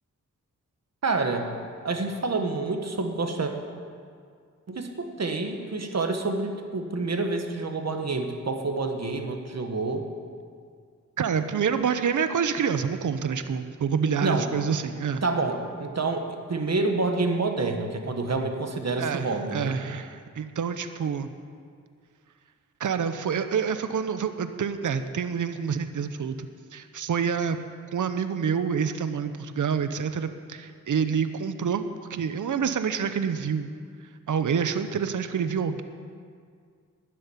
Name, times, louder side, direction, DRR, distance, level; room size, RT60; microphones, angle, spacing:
voice 1, 1.0-1.5 1.8-3.5 4.7-10.0 14.2-14.5 15.2-19.8, right 3 dB, 55° right, 4 dB, 1.6 m, -28 dB
voice 2, 11.2-15.2 19.0-21.3 22.8-27.6 27.9-33.7 34.3-35.8, right 6 dB, 75° right, 10 dB, 0.8 m, -27 dB
12.5 x 7.8 x 9.8 m, 2.1 s
wide cardioid pair, 80°, 31 cm